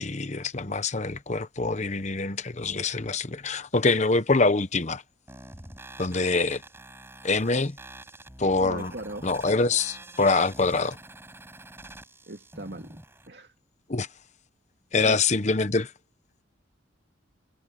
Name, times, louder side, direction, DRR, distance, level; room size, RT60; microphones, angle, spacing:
voice 1, 0.0-5.0 6.0-6.6 7.2-7.8 8.4-8.9 9.2-11.0 13.9-14.1 14.9-15.9, left 3 dB, 35° left, 0.9 m, -25 dB
sound 1, 5.3-13.3, right 1 dB, 10° right, 5.7 m, -47 dB
voice 2, 8.6-9.3 12.3-13.0 13.3-13.5 15.0-15.2, right 1 dB, 55° right, 2.5 m, -38 dB
head